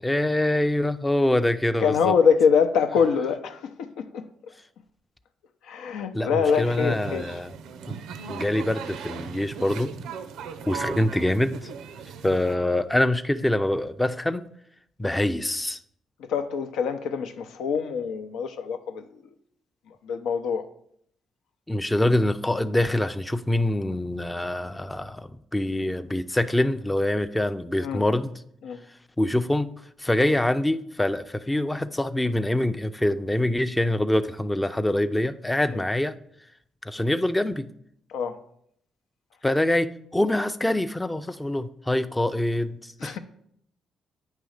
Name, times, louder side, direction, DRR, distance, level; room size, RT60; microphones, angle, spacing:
voice 1, 0.0-2.1 6.1-7.5 7.9-8.0 8.3-9.9 10.7-11.7 12.2-14.4 15.0-15.8 21.7-28.4 29.2-29.7 30.0-36.2 36.9-37.7 39.4-43.2, left 1 dB, 10° left, 0.4 m, -25 dB
voice 2, 1.8-4.2 5.7-7.2 16.3-19.0 20.0-20.7 27.8-28.0 28.6-28.8 35.7-35.8 38.1-38.4 43.0-43.2, left 6 dB, 85° left, 0.6 m, -24 dB
sound 1, 6.4-12.6, right 6 dB, 85° right, 0.6 m, -38 dB
9.0 x 3.1 x 6.4 m
cardioid pair, 90°, 0 cm